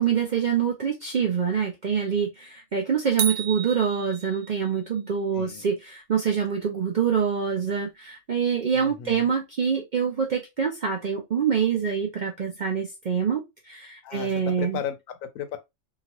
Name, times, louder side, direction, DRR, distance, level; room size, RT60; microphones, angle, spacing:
voice 1, 0.0-14.8, right 7 dB, 60° right, 0.5 m, -25 dB
sound 1, 3.2-4.8, right 8 dB, 80° right, 1.0 m, -32 dB
voice 2, 5.3-5.6 8.7-9.3 14.0-15.6, left 9 dB, 85° left, 1.0 m, -35 dB
2.9 x 2.4 x 2.9 m
omnidirectional pair, 1.4 m